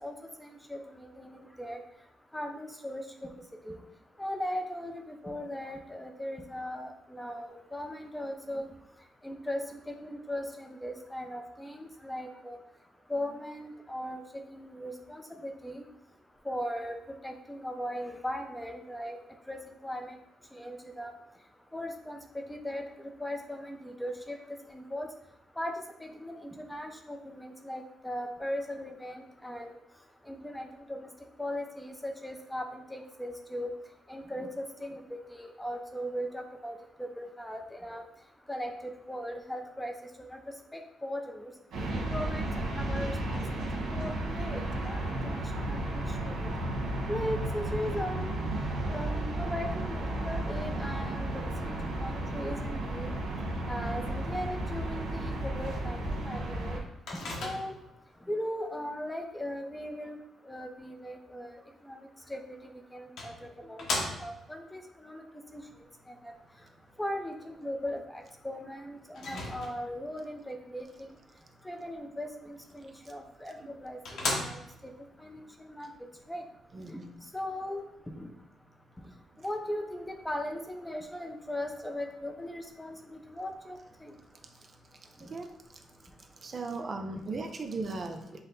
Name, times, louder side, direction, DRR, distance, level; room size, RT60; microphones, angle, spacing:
voice 1, 0.4-1.8 2.3-3.0 3.7-3.8 4.2-8.7 9.2-12.6 13.1-14.2 14.5-15.8 16.5-17.0 17.2-19.2 19.5-20.2 20.5-21.1 21.7-22.2 22.5-24.4 24.7-25.1 25.6-25.7 26.0-29.8 30.3-31.1 31.4-33.7 34.1-38.0 38.5-38.7 39.1-40.4 40.7-41.5 42.1-43.6 43.9-45.4 45.7-46.5 47.1-48.4 48.9-51.8 52.0-53.1 53.7-56.8 57.2-57.8 58.3-60.2 60.5-61.6 61.9-62.4 62.9-65.2 65.5-65.6 66.1-66.2 67.0-71.1 71.6-74.6 75.2-75.9 76.3-76.4 76.9-77.0 77.3-78.3 79.4-84.1, equal, 10° left, 4 dB, 0.5 m, -38 dB
sound 1, 41.7-56.8, right 1 dB, 80° right, 1.2 m, -33 dB
Microwave oven, 57.1-58.0 62.3-62.4 63.2-64.5 69.1-70.0 73.2-73.3 73.7-73.8 74.0-74.9, left 2 dB, 70° left, 1.0 m, -35 dB
voice 2, 76.7-77.1 85.2-85.5 85.7-85.8 86.4-88.4, right 3 dB, 40° right, 5 dB, 0.5 m, -38 dB
5.4 x 2.1 x 3.9 m, 0.84 s
cardioid pair, 90°, 0 cm